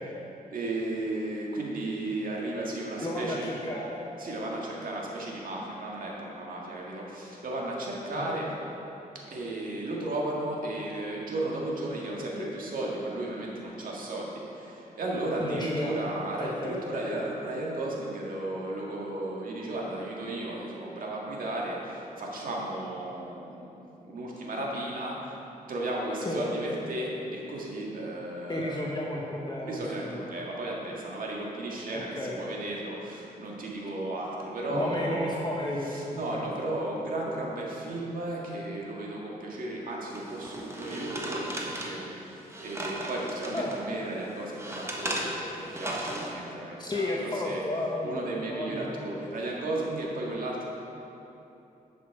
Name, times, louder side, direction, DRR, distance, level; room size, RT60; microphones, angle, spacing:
voice 1, 0.5-3.6 4.2-8.5 9.3-23.8 24.1-25.4 25.7-28.9 29.6-35.4 35.8-47.6 48.0-50.6, right 1 dB, 65° right, -3 dB, 1.9 m, -34 dB
voice 2, 3.0-4.0 8.1-8.3 12.4-12.5 15.4-15.9 16.4-16.7 26.2-26.5 28.5-30.2 31.9-32.3 34.7-36.5 43.5-43.7 46.8-48.9, left 1 dB, 30° left, -3 dB, 1.1 m, -33 dB
sound 1, 40.1-43.8 44.2-46.3, right 1 dB, 15° right, 1.3 m, -36 dB
10.5 x 6.4 x 4.8 m, 2.9 s
cardioid pair, 85°, 15 cm